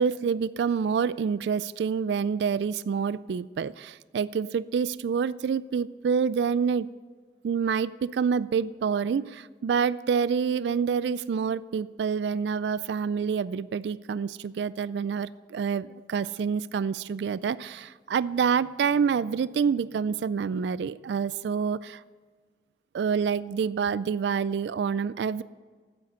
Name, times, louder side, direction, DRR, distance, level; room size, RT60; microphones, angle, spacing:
voice 1, 0.0-6.9 7.4-22.0 22.9-25.4, right 6 dB, 80° right, 18 dB, 0.3 m, -27 dB
9.3 x 8.3 x 7.7 m, 1.5 s
head